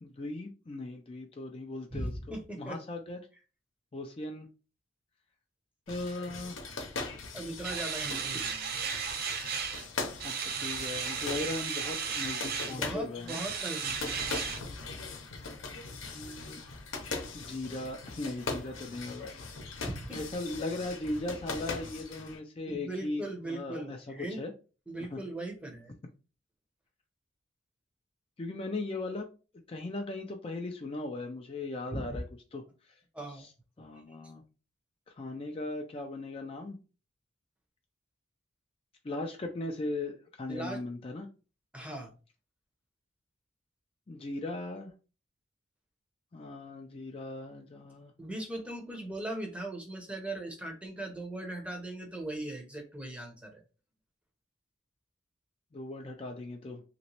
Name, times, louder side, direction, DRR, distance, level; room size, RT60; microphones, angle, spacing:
voice 1, 0.0-3.2 3.9-4.5 5.9-6.6 9.7-9.8 10.2-10.3 10.6-13.4 16.0-16.6 17.3-19.3 20.1-24.0 24.3-24.5 25.1-25.2 28.4-29.3 29.7-32.2 32.5-33.0 33.4-33.5 33.8-34.4 35.1-36.8 39.0-41.3 44.1-44.9 46.3-48.1 55.7-56.8, left 2 dB, 30° left, 3 dB, 0.4 m, -38 dB
voice 2, 1.9-2.8 7.3-8.7 12.7-14.3 19.8-20.2 22.7-24.4 24.9-26.0 31.9-32.2 33.1-33.5 34.1-34.2 40.5-40.8 41.7-42.1 48.2-53.6, right 1 dB, 5° right, 2 dB, 0.7 m, -39 dB
sound 1, 5.9-22.4, left 4 dB, 85° left, 0.8 m, -41 dB
sound 2, 7.6-9.9 10.2-12.8 13.3-14.6, right 6 dB, 50° right, 0.5 m, -35 dB
3.0 x 2.9 x 2.9 m, 0.33 s
head